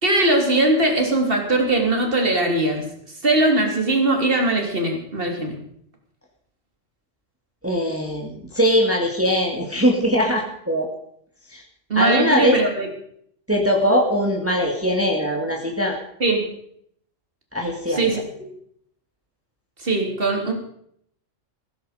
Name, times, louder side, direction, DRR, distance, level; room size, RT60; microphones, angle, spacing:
voice 1, 0.0-5.6 11.9-12.9 16.2-16.5 17.9-18.2 19.8-20.5, right 2 dB, 45° right, 2 dB, 3.4 m, -20 dB
voice 2, 7.6-10.9 11.5-11.6 12.0-12.6 13.5-16.0 17.5-18.0, equal, 10° right, 0 dB, 2.3 m, -21 dB
16.5 x 15.0 x 5.1 m, 0.68 s
omnidirectional pair, 1.3 m